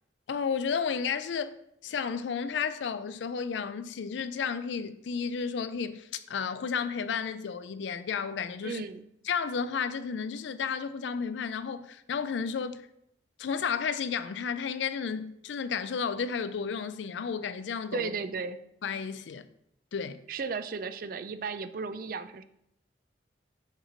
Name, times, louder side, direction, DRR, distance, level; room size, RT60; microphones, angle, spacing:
voice 1, 0.3-1.6 1.8-8.8 9.3-12.8 13.4-18.1 18.8-19.4 19.9-20.2, left 6 dB, 80° left, 0.4 m, -32 dB
voice 2, 8.6-9.0 17.9-18.6 20.3-22.4, right 5 dB, 50° right, 0.3 m, -35 dB
6.5 x 3.0 x 5.0 m
head